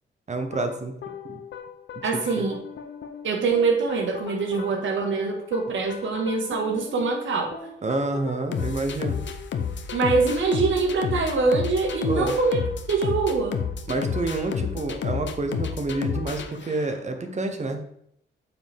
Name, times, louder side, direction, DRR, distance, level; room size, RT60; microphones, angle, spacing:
voice 1, 0.3-1.0 1.3-1.4 2.1-2.5 7.8-9.2 12.0-12.4 13.9-17.9, right 2 dB, 35° right, 6 dB, 1.1 m, -28 dB
sound 1, 0.5-17.2, left 6 dB, 65° left, 0.9 m, -32 dB
voice 2, 2.0-2.6 3.2-7.5 9.9-12.6 12.9-13.6, right 4 dB, 75° right, 2 dB, 1.9 m, -24 dB
8.6 x 5.5 x 3.6 m, 0.73 s
cardioid pair, 100°, 20 cm